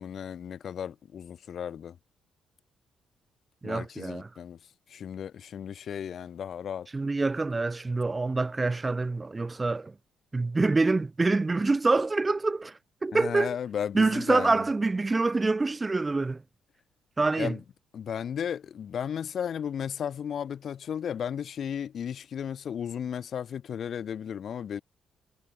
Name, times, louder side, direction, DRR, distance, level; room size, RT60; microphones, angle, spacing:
voice 1, 0.0-2.0 3.6-4.6 4.9-6.9 13.1-14.6 17.4-17.6 17.9-24.8, left 8 dB, 60° left, 2.1 m, -34 dB
voice 2, 3.6-4.3 6.9-9.9 10.3-13.6 13.9-16.4 17.2-17.5, right 3 dB, 25° right, 0.9 m, -26 dB
cardioid pair, 90°, 0 cm